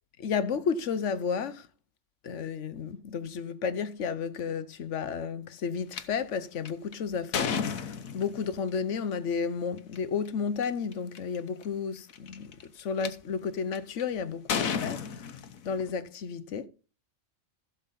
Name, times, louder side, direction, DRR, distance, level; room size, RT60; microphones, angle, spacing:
voice 1, 0.2-1.7 2.2-16.7, left 6 dB, 65° left, 1.1 m, -32 dB
sound 1, 5.9-6.0 6.7-8.5 9.8-10.0 10.6-10.7 10.9-11.4 12.1-13.1 13.7-14.0 14.5-15.9, left 7 dB, 80° left, 1.4 m, -32 dB
15.5 x 6.6 x 4.1 m
omnidirectional pair, 1.4 m